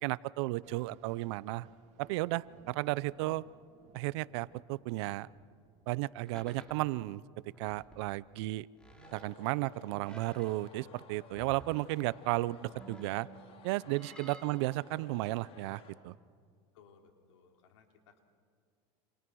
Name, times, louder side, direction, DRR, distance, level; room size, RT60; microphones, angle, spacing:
voice 1, 0.0-1.7 2.0-3.4 3.9-5.3 5.9-7.2 7.6-8.7 9.1-13.3 13.6-16.1, right 19 dB, 70° right, 21 dB, 0.6 m, -34 dB
sound 1, 0.6-6.6, right 8 dB, 50° right, 2.5 m, -62 dB
sound 2, 6.3-6.8 7.5-8.1 8.8-9.5 10.1-10.9 11.3-12.0 12.7-14.6, right 2 dB, 5° left, 3.2 m, -54 dB
sound 3, 9.0-15.9, left 5 dB, 40° left, 3.3 m, -56 dB
voice 2, 16.7-18.2, left 6 dB, 90° left, 4 dB, 3.2 m, -61 dB
28.5 x 27.5 x 6.3 m, 2.1 s
supercardioid pair, 125°, 15 cm